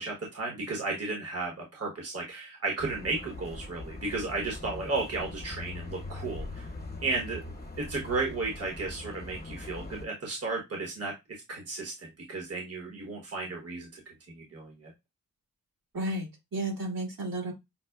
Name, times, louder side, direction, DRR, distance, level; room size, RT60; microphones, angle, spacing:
voice 1, 0.0-6.7 7.0-7.4 7.8-11.1 11.5-14.9, right 3 dB, 45° right, -1 dB, 1.1 m, -34 dB
sound 1, 2.8-10.1, left 2 dB, 30° left, 0.9 m, -42 dB
voice 2, 15.9-17.5, right 1 dB, 70° right, -3 dB, 1.8 m, -33 dB
5.7 x 2.1 x 2.3 m, 0.21 s
wide cardioid pair, 80°, 34 cm